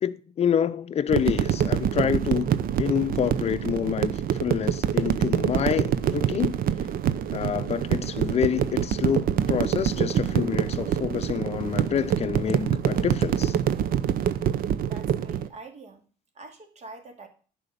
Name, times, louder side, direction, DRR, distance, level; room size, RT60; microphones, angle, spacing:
voice 1, 0.0-2.5 2.8-6.6 7.3-13.6, left 8 dB, 40° left, 0.7 m, -27 dB
sound 1, 1.1-15.5, right 9 dB, 60° right, 0.8 m, -25 dB
voice 2, 14.8-16.0 16.3-17.3, right 3 dB, 40° right, 2.5 m, -45 dB
11.0 x 5.0 x 6.7 m
cardioid pair, 110°, 17 cm